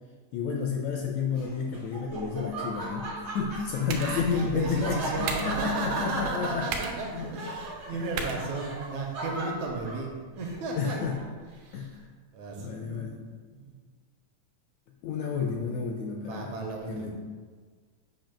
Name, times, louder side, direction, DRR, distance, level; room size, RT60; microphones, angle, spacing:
voice 1, 0.3-6.7 7.1-7.3 7.9-8.5 10.8-11.2 11.7-12.0 12.6-13.3 15.0-16.5 16.9-17.1, left 5 dB, 80° left, 2 dB, 1.6 m, -31 dB
Laughter, 1.3-11.4, right 2 dB, 55° right, 0.7 m, -38 dB
sound 1, 3.4-9.4, right 5 dB, 90° right, 2.2 m, -40 dB
voice 2, 4.0-10.1 10.4-11.0 11.6-12.0 12.3-13.1 13.5-13.7 16.2-17.1, right 3 dB, 75° right, 1 dB, 1.9 m, -34 dB
sound 2, 4.1-8.3, equal, 65° left, 0.8 m, -41 dB
7.3 x 2.8 x 5.7 m, 1.5 s
omnidirectional pair, 3.7 m